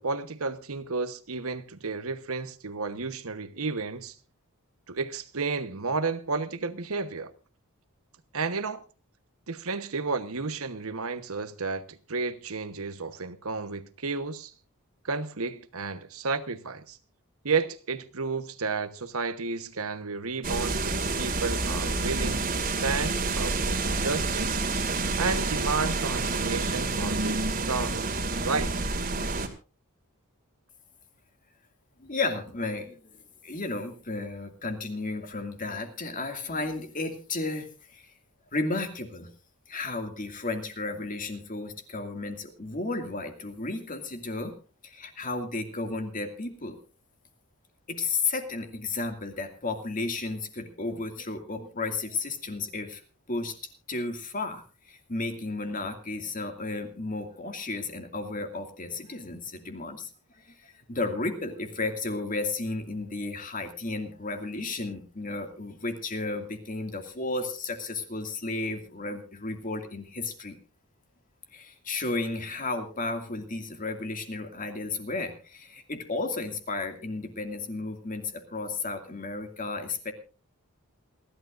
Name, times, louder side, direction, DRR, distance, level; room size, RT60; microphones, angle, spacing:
voice 1, 0.0-4.2 4.9-7.3 8.3-8.8 9.5-14.5 15.0-17.0 17.4-24.6 25.2-28.1 28.4-28.7, right 4 dB, 70° right, 1.2 m, -32 dB
sound 1, 20.4-29.5, right 3 dB, 40° right, 2.2 m, -28 dB
voice 2, 32.0-38.1 38.5-39.3 39.7-44.5 44.8-46.8 47.9-53.0 53.3-53.6 53.9-70.6 71.5-80.1, left 3 dB, 40° left, 2.3 m, -33 dB
28.0 x 12.0 x 2.6 m
head